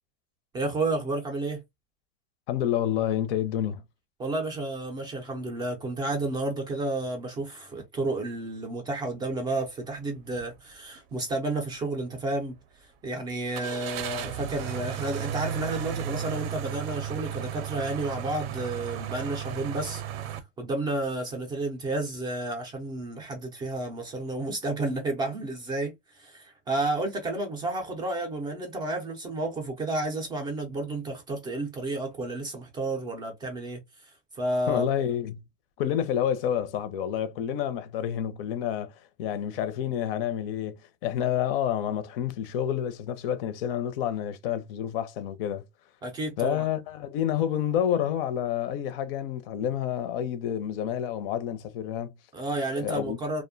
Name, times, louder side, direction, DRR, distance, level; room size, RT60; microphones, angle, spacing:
voice 1, 0.5-1.6 4.2-12.5 13.0-20.0 20.6-34.8 46.0-46.6 52.3-53.4, right 2 dB, 15° right, 0.3 m, -31 dB
voice 2, 2.5-3.8 34.7-35.4 35.8-45.6 46.4-52.1 52.8-53.2, left 10 dB, 75° left, 0.6 m, -29 dB
sound 1, 10.3-10.5 11.0-11.1 13.5-20.4, right 9 dB, 85° right, 0.6 m, -34 dB
2.5 x 2.1 x 2.5 m
supercardioid pair, 165°, 29 cm